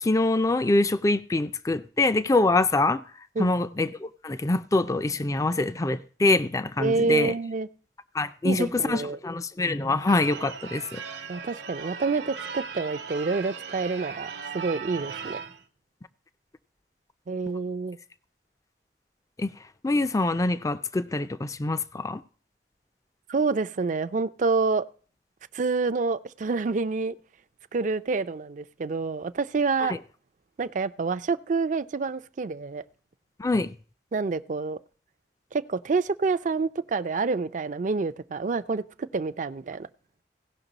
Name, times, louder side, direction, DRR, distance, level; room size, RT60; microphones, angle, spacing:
voice 1, 0.0-3.0 3.4-7.4 8.1-11.0 19.4-19.5 19.8-22.2 29.9-30.0 33.4-33.7, left 2 dB, 20° left, 0.4 m, -25 dB
voice 2, 6.8-7.7 8.4-9.2 11.3-15.4 17.3-18.0 23.3-24.9 25.5-27.2 27.7-30.0 30.6-32.8 34.1-34.8 35.5-39.9, right 4 dB, 45° right, 0.4 m, -27 dB
Church bell / Car / Alarm, 10.1-15.6, right 6 dB, 80° right, 0.9 m, -38 dB
17.0 x 5.9 x 4.0 m
head